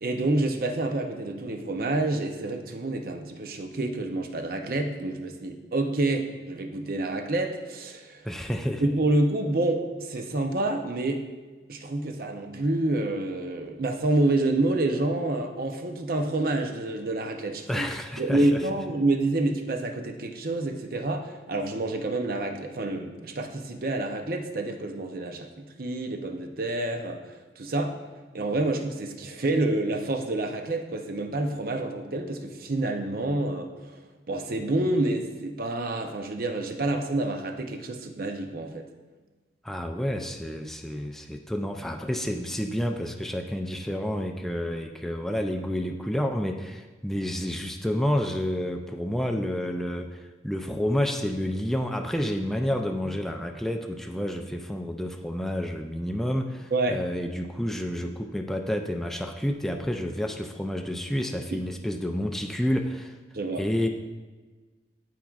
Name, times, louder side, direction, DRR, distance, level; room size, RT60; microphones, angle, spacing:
voice 1, 0.0-8.3 8.8-11.2 11.7-17.9 18.2-27.9 28.3-34.0 34.3-38.9 56.7-57.0 61.5-61.6 63.3-63.6, right 2 dB, 55° right, 4 dB, 0.7 m, -28 dB
voice 2, 8.2-8.9 17.7-18.6 39.6-63.2 63.6-63.9, equal, ahead, 3 dB, 0.3 m, -29 dB
12.5 x 4.6 x 2.4 m, 1.3 s
head